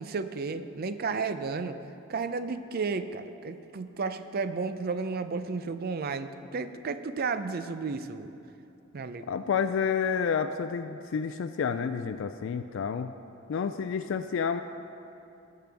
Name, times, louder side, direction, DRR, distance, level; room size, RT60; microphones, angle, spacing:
voice 1, 0.0-1.8 2.1-8.3 8.9-9.3, right 4 dB, 50° right, 10 dB, 0.5 m, -33 dB
voice 2, 9.3-13.1 13.5-14.6, left 6 dB, 65° left, 9 dB, 0.3 m, -29 dB
18.5 x 6.7 x 3.5 m, 2.9 s
head